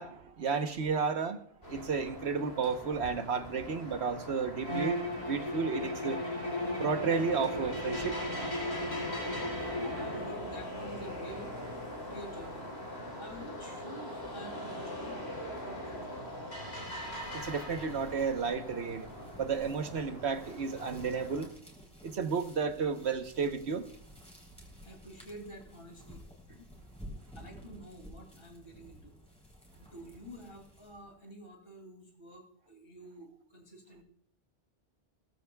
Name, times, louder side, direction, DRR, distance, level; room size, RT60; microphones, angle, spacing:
voice 1, 0.0-1.4 1.7-5.0 5.2-6.2 6.8-8.2 17.3-19.1 19.4-21.5 22.0-23.8, right 5 dB, 80° right, 8 dB, 1.3 m, -32 dB
sound 1, 1.6-21.5, left 1 dB, 75° left, 4.1 m, -41 dB
Bowed string instrument, 4.6-10.4, left 1 dB, 30° left, 5.2 m, -36 dB
voice 2, 9.6-11.8 12.1-12.7 13.2-16.4 24.8-26.2 26.5-26.7 27.3-29.2 29.8-34.0, right 1 dB, 60° left, 2 dB, 3.0 m, -49 dB
sound 2, 16.7-31.2, equal, 5° left, 3.6 m, -53 dB
17.5 x 14.5 x 2.3 m, 0.62 s
omnidirectional pair, 1.1 m